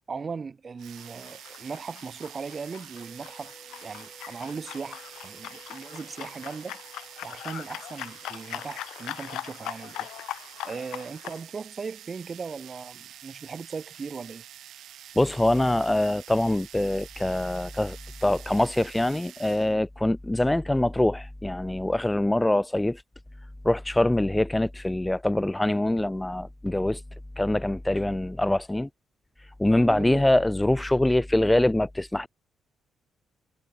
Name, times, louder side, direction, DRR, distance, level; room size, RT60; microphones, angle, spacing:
voice 1, 0.1-6.8 7.2-10.1 10.6-14.4 29.8-30.2, right 5 dB, 35° right, 2.2 m, -38 dB
sound 1, 0.8-19.7, right 11 dB, 75° right, 1.3 m, -47 dB
sound 2, 0.9-11.4, left 14 dB, 85° left, 1.0 m, -41 dB
sound 3, 2.9-11.0, right 1 dB, 10° right, 2.4 m, -57 dB
voice 2, 15.2-18.0 18.2-23.0 23.6-27.0 27.4-28.9 29.6-32.3, left 1 dB, 10° left, 0.3 m, -24 dB
cardioid pair, 90°, 0 cm